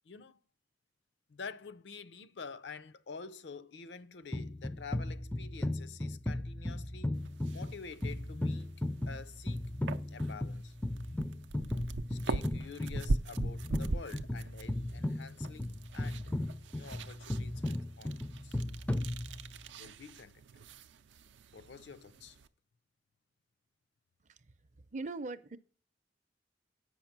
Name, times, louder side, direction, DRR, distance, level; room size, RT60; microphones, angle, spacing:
voice 1, 0.1-0.4 1.3-7.2 7.5-8.7 9.1-9.7 10.1-10.7 12.1-16.4 16.7-17.6 18.0-18.2 18.4-18.6 19.8-20.6 21.5-22.4, left 5 dB, 75° left, 0.5 m, -48 dB
sound 1, 4.3-19.7, left 1 dB, 10° left, 0.3 m, -36 dB
sound 2, 7.1-22.5, right 3 dB, 90° right, 0.5 m, -42 dB
voice 2, 24.2-25.6, right 3 dB, 40° right, 0.5 m, -42 dB
8.0 x 5.6 x 5.8 m
head